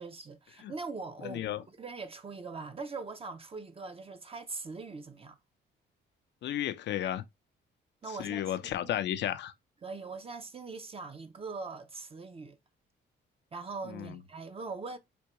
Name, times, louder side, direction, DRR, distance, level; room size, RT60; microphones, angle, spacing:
voice 1, 0.0-5.4 8.0-8.4 8.8-8.9 9.8-12.6 13.5-15.0, right 4 dB, 30° right, 0.6 m, -41 dB
voice 2, 1.2-1.6 6.4-7.2 8.2-9.5 13.9-14.1, left 11 dB, 65° left, 0.5 m, -33 dB
3.5 x 2.9 x 2.9 m
cardioid pair, 90°, 20 cm